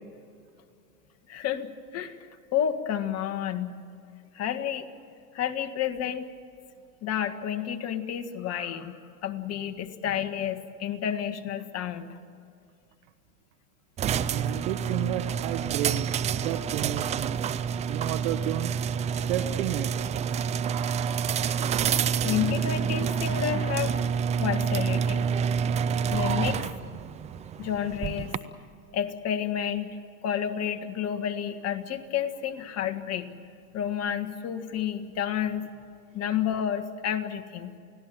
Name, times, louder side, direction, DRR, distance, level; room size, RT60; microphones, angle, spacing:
voice 1, 1.3-3.8 4.3-4.9 5.3-6.3 7.0-12.2 21.4-21.6 22.2-24.0 24.4-25.3 26.1-27.0 27.6-28.3 28.9-33.3 33.7-35.7 36.1-37.7, left 9 dB, 35° left, 8 dB, 1.8 m, -30 dB
sound 1, 14.0-28.4, right 7 dB, 15° right, 0.5 m, -28 dB
voice 2, 14.3-17.4 17.9-18.7 19.3-19.9, right 13 dB, 60° right, 10 dB, 1.3 m, -32 dB
29.0 x 17.5 x 7.7 m, 2.5 s
hypercardioid pair, 120°, 45 cm